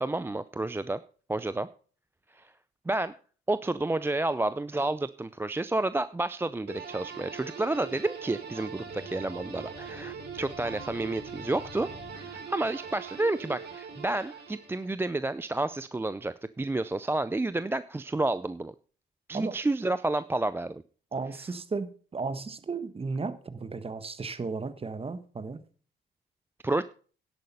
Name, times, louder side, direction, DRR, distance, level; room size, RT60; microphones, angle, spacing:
voice 1, 0.0-1.0 1.3-1.7 2.3-2.5 2.9-3.2 3.5-11.9 12.1-18.7 19.3-20.8 26.6-26.8, right 2 dB, 10° right, 15 dB, 0.4 m, -30 dB
sound 1, 6.7-15.0, right 6 dB, 55° right, 3.3 m, -42 dB
sound 2, 8.8-13.0, left 3 dB, 65° left, 3.8 m, -49 dB
voice 2, 21.1-25.6, right 4 dB, 30° right, 12 dB, 1.4 m, -34 dB
10.5 x 8.5 x 5.4 m, 0.41 s
cardioid pair, 90°, 20 cm